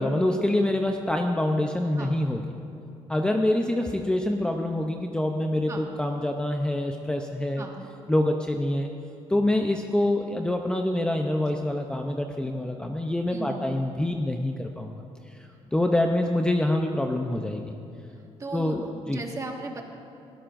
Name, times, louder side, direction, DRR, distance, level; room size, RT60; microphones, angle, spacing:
voice 1, 0.0-2.4 3.1-7.6 8.1-8.9 9.3-15.0 15.7-17.8 18.5-19.2, left 1 dB, 10° left, 3 dB, 0.6 m, -26 dB
voice 2, 5.7-6.0 7.6-7.9 13.3-13.7 18.4-19.8, right 3 dB, 30° right, 1 dB, 1.7 m, -37 dB
20.5 x 14.0 x 2.6 m, 2.7 s
cardioid pair, 100°, 11 cm